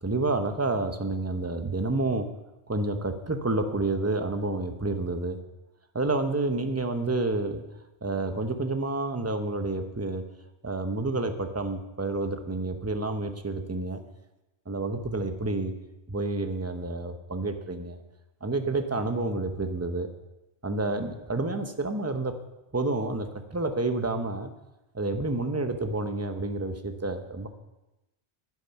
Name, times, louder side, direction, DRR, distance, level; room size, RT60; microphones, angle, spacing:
voice 1, 0.0-2.3 2.7-5.4 5.9-7.6 8.0-10.2 10.6-14.0 14.7-15.7 16.1-18.0 18.4-20.1 20.6-22.3 22.7-24.5 24.9-27.5, right 2 dB, 15° right, 6 dB, 0.8 m, -29 dB
10.5 x 9.5 x 5.7 m, 0.97 s
omnidirectional pair, 1.1 m